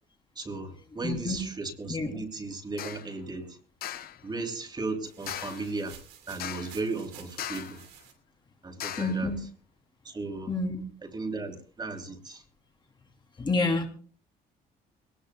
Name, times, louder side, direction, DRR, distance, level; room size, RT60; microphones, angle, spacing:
voice 1, 0.3-3.6 4.2-6.0 6.3-7.8 8.6-9.3 10.0-10.5 11.1-12.4, right 3 dB, 25° right, 4 dB, 3.2 m, -35 dB
voice 2, 1.0-1.4 1.9-2.1 9.0-9.4 10.5-10.8 13.4-13.9, left 2 dB, 25° left, 2 dB, 3.1 m, -28 dB
sound 1, 2.8-3.1 3.8-4.2 5.3-5.7 6.4-6.8 7.4-7.8 8.8-9.2, left 11 dB, 65° left, 0.9 m, -38 dB
sound 2, 5.1-8.1, right 9 dB, 90° right, 2.8 m, -50 dB
22.5 x 19.0 x 2.3 m, 0.42 s
cardioid pair, 110°, 17 cm